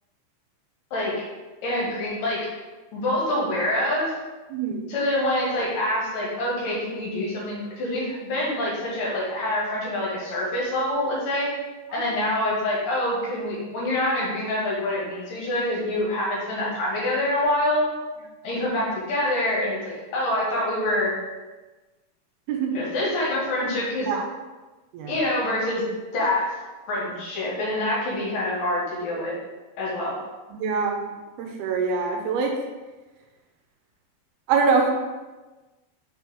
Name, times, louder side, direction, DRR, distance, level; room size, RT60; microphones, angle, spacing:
voice 1, 0.9-1.2 1.6-2.5 2.9-4.2 4.9-11.6 11.9-17.9 18.4-21.2 22.7-24.1 25.1-25.8 26.1-26.6 26.9-29.3 29.8-30.2, left 1 dB, 65° left, -5 dB, 2.9 m, -26 dB
voice 2, 4.5-4.8 11.9-12.0 22.5-22.8 24.1-24.2 24.9-25.1 30.5-31.0 31.4-32.6 34.5-34.9, right 5 dB, 85° right, 1 dB, 2.6 m, -24 dB
6.1 x 4.5 x 3.6 m, 1.2 s
omnidirectional pair, 4.5 m